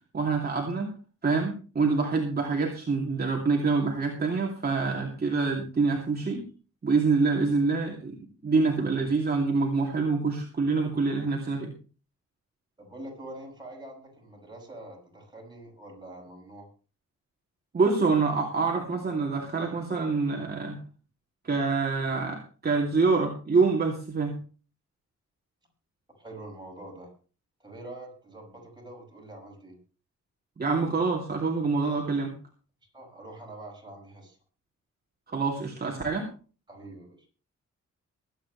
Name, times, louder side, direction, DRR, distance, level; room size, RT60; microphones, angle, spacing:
voice 1, 0.1-0.9 1.2-6.4 6.8-8.2 8.4-11.7 17.7-20.8 21.4-24.4 30.6-32.3 35.3-36.3, right 4 dB, 35° right, 0 dB, 2.7 m, -26 dB
voice 2, 12.8-16.7 26.2-27.1 27.6-29.8 32.9-34.4 36.7-37.3, right 1 dB, 15° right, 0 dB, 6.4 m, -45 dB
23.0 x 9.3 x 3.2 m, 0.37 s
wide cardioid pair, 130°, 29 cm